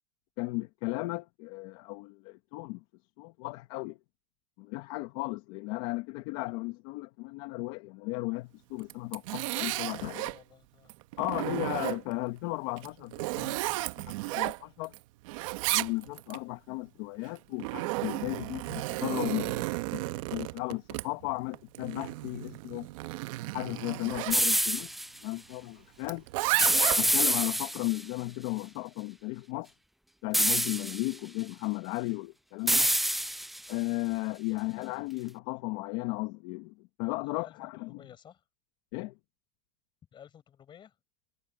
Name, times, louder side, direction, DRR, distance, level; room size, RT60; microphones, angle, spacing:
voice 1, 0.4-2.8 3.2-4.0 4.6-10.3 11.2-14.9 15.7-22.9 23.5-24.9 25.2-26.2 27.0-29.7 30.2-32.9 33.7-38.0 38.9-39.1, left 22 dB, 55° left, 1.4 m, -35 dB
Zipper (clothing), 8.8-10.4 10.9-12.2 12.8-15.0 15.2-16.4 17.3-24.4 26.0-27.3, right 21 dB, 65° right, 1.3 m, -33 dB
voice 2, 9.8-11.0 37.2-38.4 40.1-40.9, left 9 dB, 25° left, 7.6 m, -55 dB
sound 1, 24.3-25.1 26.6-28.0 30.3-31.1 32.7-33.7, equal, ahead, 0.4 m, -26 dB
supercardioid pair, 150°, 18 cm